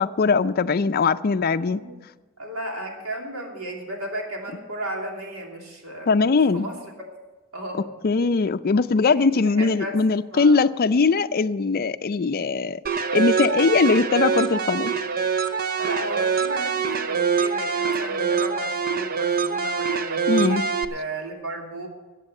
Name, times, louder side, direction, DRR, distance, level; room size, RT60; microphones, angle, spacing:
voice 1, 0.0-1.8 6.1-6.7 8.0-12.8 13.1-14.9 20.3-20.6, left 4 dB, 45° left, 12 dB, 0.5 m, -20 dB
voice 2, 1.5-2.0 2.4-6.2 6.5-7.1 7.5-7.9 9.1-10.0 10.3-10.6 15.8-20.6 20.9-21.9, right 1 dB, 90° right, 0 dB, 2.9 m, -34 dB
sound 1, 12.9-20.9, right 6 dB, 45° right, 0.7 m, -24 dB
14.5 x 8.4 x 6.6 m, 1.2 s
head